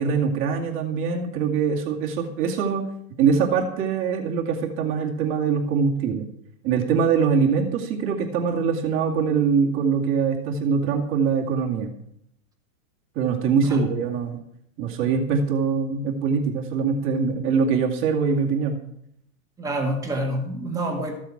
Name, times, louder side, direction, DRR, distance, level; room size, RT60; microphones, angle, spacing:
voice 1, 0.0-2.8 3.2-6.3 6.6-11.9 13.2-14.4 14.8-18.8, right 6 dB, 30° right, 0 dB, 2.3 m, -23 dB
voice 2, 13.6-13.9 19.6-21.1, right 1 dB, 10° right, 0 dB, 1.8 m, -27 dB
15.0 x 7.8 x 7.3 m, 0.73 s
supercardioid pair, 160°, 41 cm